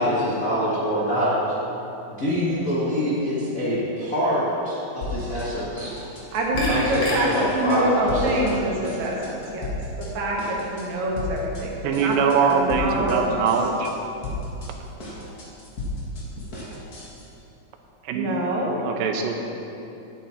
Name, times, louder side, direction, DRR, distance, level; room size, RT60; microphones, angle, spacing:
voice 1, 0.0-1.4 2.1-5.9 6.7-8.2, equal, 80° left, -9 dB, 0.7 m, -25 dB
sound 1, 5.0-5.5 5.8-7.0 7.3-7.8 8.1-8.5 8.8-10.1 10.4-10.8 11.2-11.6 11.9-13.2 13.4-13.9 14.2-17.2, left 2 dB, 55° left, 1.0 m, -34 dB
sound 2, 6.0-11.1, equal, 40° left, 1.9 m, -35 dB
voice 2, 6.3-13.5 18.1-18.8, right 1 dB, 65° right, -2 dB, 2.1 m, -26 dB
voice 3, 11.8-13.9 18.0-18.3 18.8-19.3, right 5 dB, 80° right, 4 dB, 2.3 m, -22 dB
10.0 x 7.9 x 4.3 m, 2.9 s
omnidirectional pair, 4.2 m